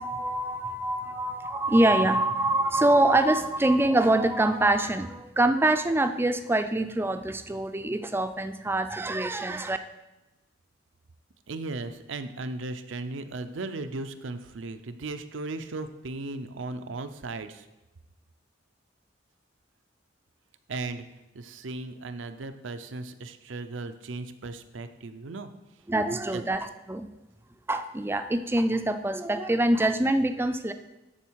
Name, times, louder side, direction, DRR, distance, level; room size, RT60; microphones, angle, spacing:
voice 1, 0.0-9.8 25.9-27.1 27.7-30.7, right 1 dB, 10° right, 8 dB, 0.4 m, -25 dB
voice 2, 11.5-17.7 20.7-21.0 21.3-25.5 26.1-26.4, right 3 dB, 90° right, 9 dB, 0.6 m, -36 dB
12.5 x 4.3 x 4.7 m, 1.0 s
head